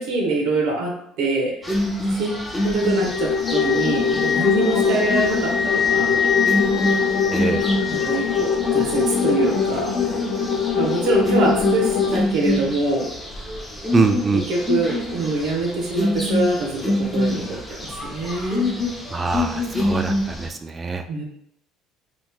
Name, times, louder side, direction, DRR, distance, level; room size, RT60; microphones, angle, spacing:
voice 1, 0.0-1.5 2.1-2.4 2.6-6.2 7.9-9.9 10.7-13.1 14.3-18.8 21.1-21.2, right 2 dB, 75° right, 0 dB, 0.9 m, -24 dB
sound 1, 1.6-20.5, left 1 dB, 10° left, 0.7 m, -26 dB
Wind instrument woodwind instrument, 2.6-8.6, left 6 dB, 70° left, 0.8 m, -26 dB
sound 2, 2.8-12.2, left 6 dB, 50° left, 0.4 m, -23 dB
voice 2, 7.3-7.6 13.9-14.4 19.1-20.1 20.4-21.0, right 4 dB, 25° right, 7 dB, 0.3 m, -22 dB
3.5 x 3.1 x 2.3 m, 0.75 s
cardioid pair, 110°, 0 cm